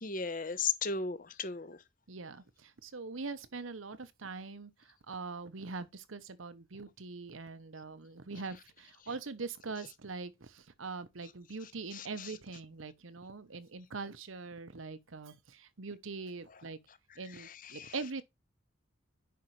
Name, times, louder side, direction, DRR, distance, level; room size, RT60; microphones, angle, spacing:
voice 1, 0.0-1.8 11.9-12.1 17.4-17.9, left 5 dB, 45° left, 0.9 m, -36 dB
voice 2, 2.1-16.8 17.2-18.2, right 4 dB, 85° right, 1.0 m, -43 dB
10.0 x 5.2 x 3.2 m
head